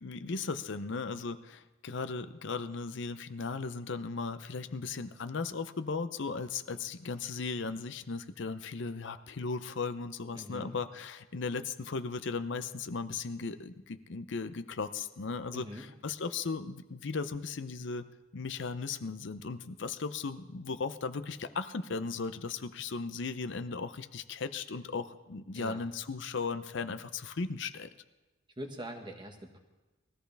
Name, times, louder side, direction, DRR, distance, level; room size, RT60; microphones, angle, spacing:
voice 1, 0.0-18.0 18.3-27.9, left 4 dB, 65° left, 10 dB, 0.6 m, -37 dB
voice 2, 10.3-10.7 15.5-15.9 25.5-25.8 28.6-29.6, equal, 25° right, 2 dB, 1.5 m, -43 dB
19.5 x 14.0 x 3.4 m, 1.1 s
head